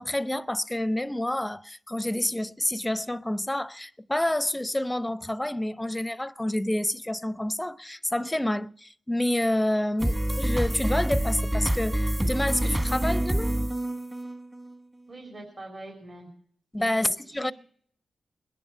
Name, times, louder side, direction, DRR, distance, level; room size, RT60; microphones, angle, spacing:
voice 1, 0.0-13.6 16.7-17.5, left 1 dB, 10° left, 0.6 m, -28 dB
sound 1, 10.0-14.7, right 1 dB, 20° right, 1.3 m, -27 dB
voice 2, 15.1-16.3 16.8-17.5, right 2 dB, 50° right, 3.5 m, -44 dB
20.5 x 10.5 x 5.7 m
cardioid pair, 60°, 0 cm